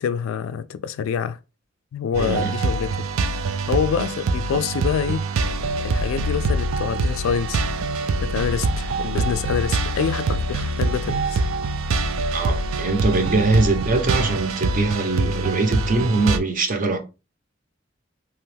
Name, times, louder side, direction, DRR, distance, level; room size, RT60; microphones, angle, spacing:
voice 1, 0.0-1.4 1.9-2.9 3.7-5.2 5.8-7.6 8.2-11.4, left 7 dB, 80° left, 0.3 m, -26 dB
sound 1, 2.1-16.4, right 3 dB, 85° right, 0.4 m, -24 dB
voice 2, 2.2-2.6 12.3-17.0, right 3 dB, 40° right, 0.6 m, -22 dB
2.9 x 2.2 x 3.2 m
head